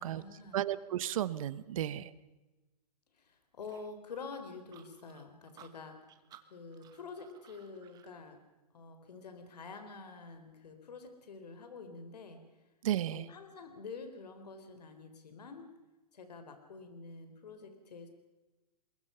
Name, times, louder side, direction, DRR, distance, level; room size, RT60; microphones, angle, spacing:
voice 1, 0.0-0.6 3.2-6.0 6.5-8.4 8.7-12.6 13.1-15.7 16.1-18.1, left 4 dB, 75° left, 7 dB, 4.0 m, -48 dB
voice 2, 0.5-2.1 12.8-13.3, right 12 dB, 55° right, 17 dB, 1.2 m, -33 dB
sound 1, 3.6-8.1, right 10 dB, 20° right, 1.4 m, -59 dB
24.0 x 22.0 x 5.7 m, 1.1 s
hypercardioid pair, 145°, 21 cm